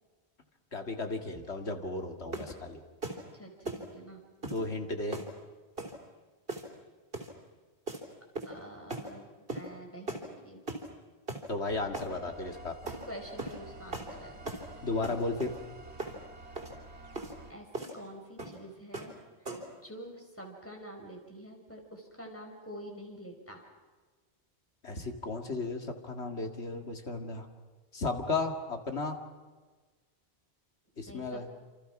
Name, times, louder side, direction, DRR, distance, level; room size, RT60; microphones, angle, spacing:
voice 1, 0.7-2.8 4.5-5.2 11.5-12.7 14.8-15.5 24.8-27.5 27.9-29.2 31.0-31.5, left 3 dB, 80° left, 5 dB, 2.4 m, -34 dB
sound 1, 2.3-2.6 3.0-3.2 3.6-3.9 4.4-4.6 5.1-5.3 5.8-6.0 6.5-6.8 7.1-7.3 7.9-8.0 8.3-8.6 8.9-9.1 9.5-9.7 10.1-10.3 10.7-10.9 11.3-11.4 11.9-12.1 12.9-13.0 13.4-13.6 13.9-14.1 14.4-14.7 15.0-15.6 16.0-16.2 16.5-16.7 17.1-17.3 17.7-18.0 18.4-18.6 18.9-19.1 19.4-19.7, right 2 dB, 55° right, 3.9 m, -38 dB
voice 2, 3.3-4.2 8.4-10.6 12.8-14.4 17.0-17.1 17.5-19.1 19.7-23.6 31.1-31.5, equal, 10° left, 1 dB, 5.3 m, -47 dB
sound 2, 11.7-17.5, right 2 dB, 85° right, 2.5 m, -49 dB
28.0 x 27.5 x 6.0 m, 1.3 s
omnidirectional pair, 1.1 m